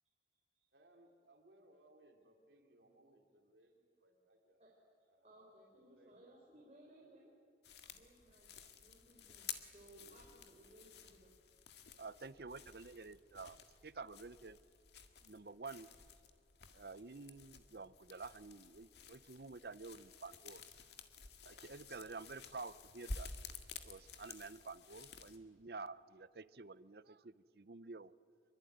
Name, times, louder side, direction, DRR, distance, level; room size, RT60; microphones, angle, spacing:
voice 1, 0.7-4.6 5.1-5.5 5.8-6.7, right 1 dB, 75° right, 2 dB, 3.1 m, -67 dB
voice 2, 5.2-7.3 7.9-11.4, right 1 dB, 35° right, -4 dB, 4.1 m, -62 dB
sound 1, 7.6-25.4, left 5 dB, 70° left, 1.9 m, -53 dB
voice 3, 12.0-14.6 15.2-15.9 16.7-20.6 21.5-23.3 23.9-28.1, right 4 dB, 55° right, 16 dB, 0.7 m, -50 dB
25.5 x 23.5 x 9.3 m, 2.2 s
head